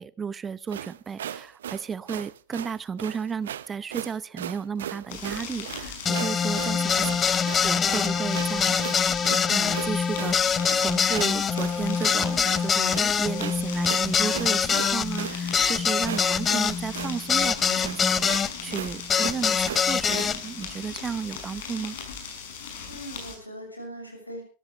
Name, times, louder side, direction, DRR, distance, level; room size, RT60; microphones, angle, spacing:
voice 1, 0.0-8.7 9.5-22.0, right 6 dB, 20° right, 19 dB, 0.7 m, -33 dB
sound 1, 0.7-20.4, right 10 dB, 65° right, 0.7 m, -37 dB
sound 2, 5.1-23.3, left 6 dB, 55° left, 5.7 m, -39 dB
sound 3, 6.0-18.5 19.1-20.4, left 7 dB, 20° left, 0.6 m, -24 dB
voice 2, 6.6-7.1 22.9-24.4, right 1 dB, 85° left, 4 dB, 6.6 m, -40 dB
23.5 x 14.0 x 3.2 m, 0.37 s
figure-of-eight pair, 90°, 0 cm